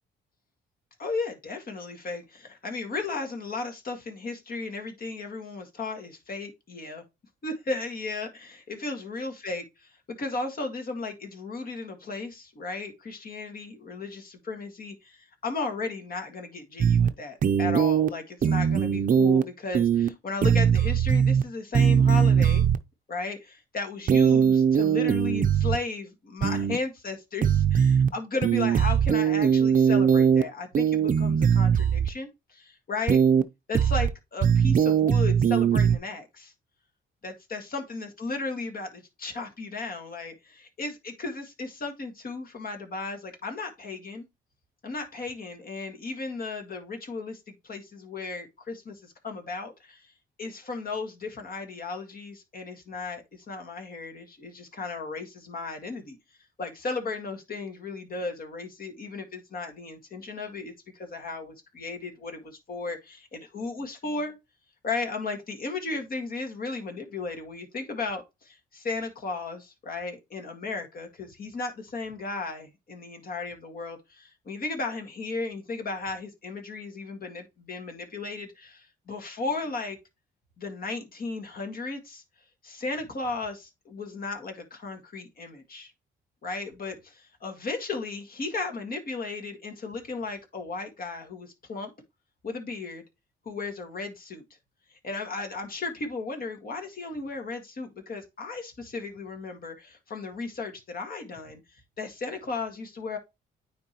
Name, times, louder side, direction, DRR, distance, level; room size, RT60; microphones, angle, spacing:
voice 1, 1.0-7.0 7.4-22.6 23.1-33.2 33.7-36.5 37.2-44.2 44.8-50.1 50.4-56.2 56.6-64.4 64.8-80.0 80.6-82.2 82.6-85.9 86.4-91.9 92.4-93.0 93.5-94.4 95.0-103.2, left 3 dB, 45° left, 1.9 m, -35 dB
sound 1, 16.8-17.1 17.4-18.1 18.4-19.4 19.7-20.1 20.4-21.4 21.7-22.8 24.1-25.8 26.4-26.8 27.4-28.1 28.4-30.4 30.7-32.1 33.1-33.4 33.7-34.1 34.4-36.0, right 7 dB, 45° right, 0.6 m, -21 dB
9.3 x 3.7 x 3.0 m
cardioid pair, 90°, 20 cm